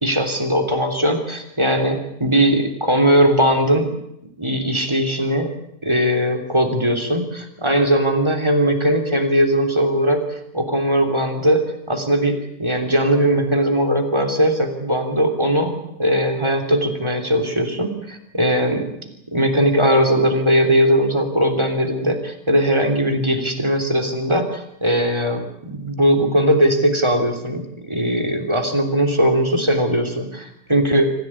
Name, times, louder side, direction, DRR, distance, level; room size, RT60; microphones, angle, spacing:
voice 1, 0.0-3.9 4.4-5.5 5.8-18.9 19.3-31.1, equal, 15° right, 7 dB, 3.3 m, -19 dB
25.0 x 15.5 x 9.8 m, 0.79 s
omnidirectional pair, 2.0 m